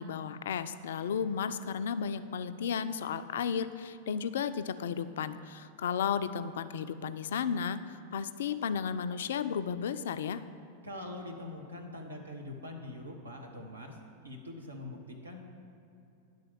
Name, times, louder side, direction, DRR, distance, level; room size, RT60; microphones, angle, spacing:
voice 1, 0.0-10.4, left 7 dB, 60° left, 12 dB, 0.3 m, -34 dB
voice 2, 10.8-14.0 14.2-15.4, left 1 dB, 80° right, 1 dB, 0.9 m, -43 dB
10.0 x 4.0 x 6.8 m, 2.6 s
figure-of-eight pair, 90°, 0 cm